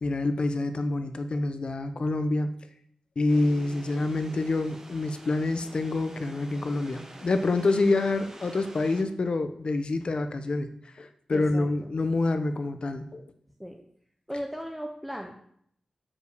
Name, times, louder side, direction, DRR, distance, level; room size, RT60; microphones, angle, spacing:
voice 1, 0.0-2.5 3.2-10.7 11.0-13.2, left 2 dB, 50° left, 9 dB, 0.8 m, -27 dB
sound 1, 3.3-9.0, right 2 dB, 25° right, 1.2 m, -47 dB
voice 2, 11.3-11.7 13.6-13.8 14.3-15.3, equal, ahead, 2 dB, 0.7 m, -36 dB
7.2 x 5.1 x 6.6 m, 0.68 s
wide cardioid pair, 120°, 2 cm